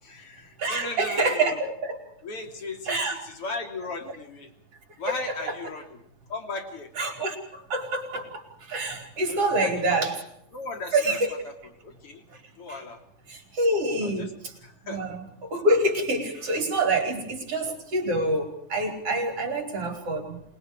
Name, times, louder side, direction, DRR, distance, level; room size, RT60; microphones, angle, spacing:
voice 1, 0.0-1.6 2.2-4.5 5.0-6.0 6.3-6.9 9.5-10.0 10.5-11.2 11.5-11.6 11.8-12.2 12.6-13.0 14.0-14.3 14.6-15.2, left 3 dB, 50° left, 4 dB, 4.2 m, -36 dB
voice 2, 0.6-2.0 2.9-3.2 5.1-5.5 7.0-10.1 10.9-11.3 12.7-12.8 13.3-14.3 14.8-20.4, right 2 dB, 55° right, 4 dB, 5.7 m, -26 dB
28.0 x 21.5 x 4.8 m, 0.71 s
omnidirectional pair, 3.3 m